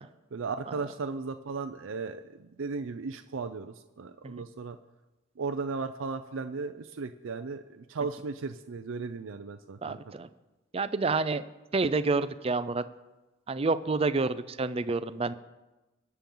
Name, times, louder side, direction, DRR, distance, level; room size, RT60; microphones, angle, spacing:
voice 1, 0.3-4.8 5.4-10.0, right 4 dB, 85° right, 8 dB, 0.5 m, -36 dB
voice 2, 9.8-10.3 10.7-11.4 11.7-12.8 13.5-15.3, right 3 dB, 30° right, 14 dB, 0.5 m, -28 dB
21.5 x 7.2 x 3.8 m, 1.1 s
head